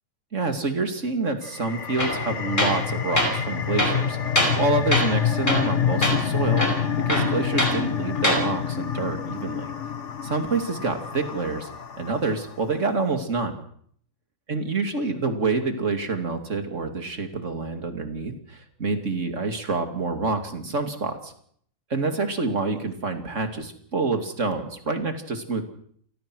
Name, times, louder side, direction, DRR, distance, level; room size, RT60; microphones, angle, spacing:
voice 1, 0.3-4.2 4.6-6.6 6.9-9.7 10.2-11.7 12.0-13.5 14.5-21.3 21.9-25.6, right 3 dB, 65° right, 6 dB, 2.9 m, -27 dB
sound 1, 1.4-12.6, left 8 dB, 65° left, 1.5 m, -27 dB
Tools, 2.0-2.2 2.6-2.8 3.2-3.3 3.8-4.6 4.9-5.2 5.5-5.7 6.0-6.2 6.6-7.8 8.2-8.4, equal, 35° left, 5.5 m, -23 dB
28.5 x 19.0 x 6.2 m, 0.63 s
omnidirectional pair, 1.4 m